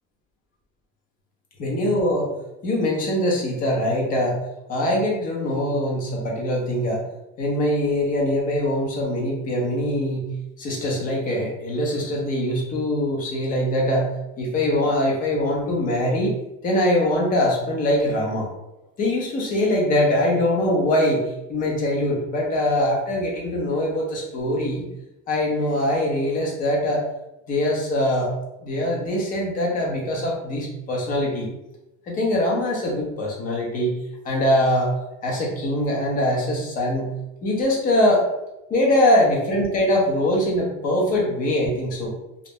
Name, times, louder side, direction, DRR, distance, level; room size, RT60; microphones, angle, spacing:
voice 1, 1.6-2.3 2.6-4.4 4.7-7.0 7.4-10.3 10.6-14.1 14.4-16.3 16.6-18.5 19.0-24.9 25.3-27.1 27.5-28.3 28.6-31.5 32.1-34.0 34.2-34.9 35.2-37.1 37.4-38.3 38.7-42.1, left 1 dB, 20° left, -2 dB, 0.4 m, -22 dB
2.4 x 2.0 x 3.4 m, 0.92 s
cardioid pair, 165°, 39 cm